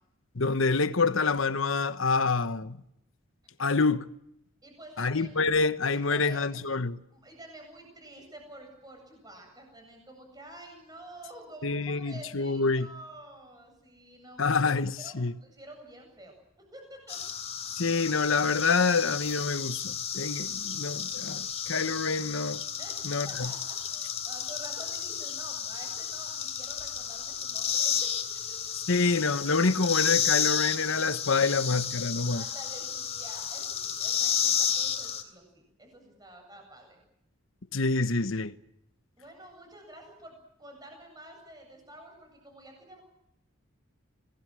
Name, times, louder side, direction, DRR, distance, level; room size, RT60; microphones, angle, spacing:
voice 1, 0.3-2.8 3.6-4.1 5.0-7.0 11.6-12.9 14.4-15.3 17.7-22.6 23.0-23.5 28.9-32.4 37.7-38.5, left 4 dB, 65° left, 1.1 m, -27 dB
voice 2, 4.6-5.3 6.1-6.4 7.1-14.7 15.0-16.3 16.7-17.2 22.8-28.7 32.3-37.0 39.2-43.0, right 1 dB, 20° right, 8.0 m, -49 dB
sound 1, 17.1-35.2, left 8 dB, 30° left, 3.3 m, -32 dB
28.5 x 19.5 x 7.7 m
head